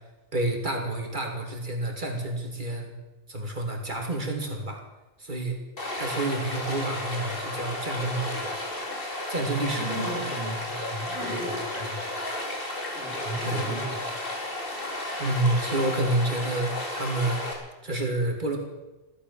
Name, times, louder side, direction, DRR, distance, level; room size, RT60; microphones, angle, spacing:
voice 1, 0.3-2.9 3.3-4.8 5.2-5.6 5.9-8.6 8.9-10.3 13.4-13.6 15.2-17.4 17.8-18.6, right 2 dB, 50° right, 1 dB, 3.0 m, -29 dB
Stream, 5.8-17.5, left 1 dB, 60° left, 3.3 m, -33 dB
voice 2, 9.6-12.2 12.9-14.3, equal, 90° left, -2 dB, 5.0 m, -36 dB
15.5 x 13.0 x 7.0 m, 1.1 s
omnidirectional pair, 1.1 m